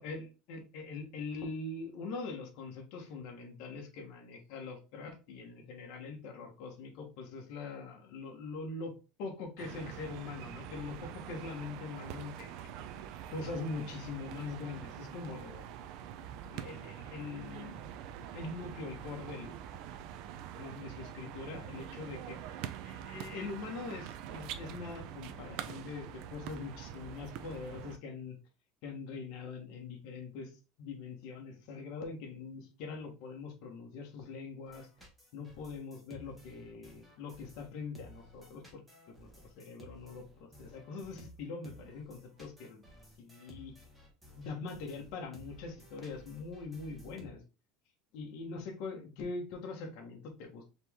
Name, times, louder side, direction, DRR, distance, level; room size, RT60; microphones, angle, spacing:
voice 1, 0.0-12.7 13.3-15.6 16.5-17.9 18.3-19.6 20.5-22.4 22.8-28.4 28.8-30.5 30.8-34.9 35.3-38.8 39.2-39.3 39.6-42.8 43.2-43.7 44.4-47.4 48.1-50.7, left 4 dB, 50° left, 2 dB, 1.2 m, -43 dB
sound 1, 9.6-28.0, right 10 dB, 50° right, 0.4 m, -45 dB
sound 2, 34.6-47.3, right 1 dB, 5° right, 1.1 m, -56 dB
4.2 x 3.0 x 3.5 m, 0.32 s
cardioid pair, 175°, 0 cm